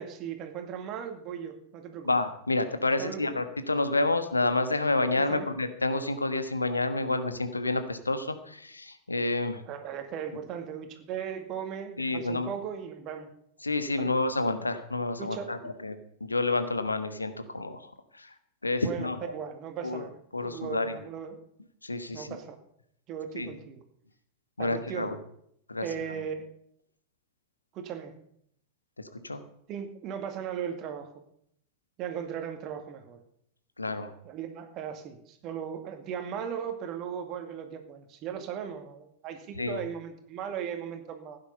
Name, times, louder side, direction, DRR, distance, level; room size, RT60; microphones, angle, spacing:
voice 1, 0.0-2.1 3.0-3.3 5.2-5.5 9.7-13.3 14.0-14.1 15.2-15.5 18.8-20.1 20.4-21.4 22.1-22.6 23.1-23.8 24.6-25.1 25.8-26.5 27.7-28.1 29.7-31.2 32.0-33.2 34.2-41.4, right 8 dB, 35° right, 6 dB, 2.2 m, -37 dB
voice 2, 2.0-9.6 12.0-12.5 13.6-18.3 18.6-19.3 19.8-20.0 20.3-21.0 21.8-22.3 23.3-23.5 24.6-25.2 25.7-25.9 29.2-29.4 33.8-34.1 39.6-39.8, left 2 dB, 80° left, 10 dB, 1.3 m, -29 dB
16.0 x 9.6 x 5.5 m, 0.69 s
figure-of-eight pair, 90°, 0 cm